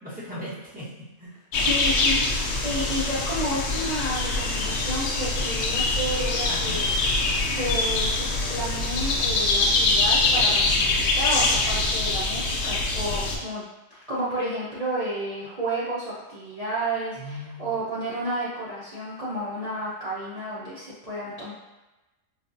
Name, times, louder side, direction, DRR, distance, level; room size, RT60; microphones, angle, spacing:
voice 1, 0.0-1.4 6.5-6.9 17.2-17.8, left 1 dB, 5° right, -10 dB, 1.0 m, -38 dB
sound 1, 1.5-13.4, left 3 dB, 65° left, 0.7 m, -24 dB
voice 2, 1.6-6.9 7.5-13.6 13.9-21.5, right 1 dB, 45° right, -10 dB, 0.5 m, -31 dB
4.0 x 2.4 x 2.5 m, 1.1 s
omnidirectional pair, 1.5 m